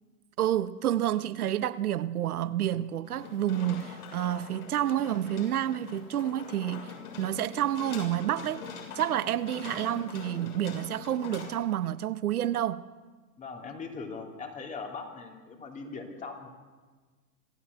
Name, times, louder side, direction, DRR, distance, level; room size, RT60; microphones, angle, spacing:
voice 1, 0.4-12.8, right 11 dB, 65° right, 1.0 m, -29 dB
sound 1, 3.0-11.5, left 5 dB, 70° left, 7.1 m, -43 dB
voice 2, 13.4-16.5, left 4 dB, 15° left, 3.0 m, -40 dB
26.5 x 14.5 x 8.2 m
hypercardioid pair, 135°, 47 cm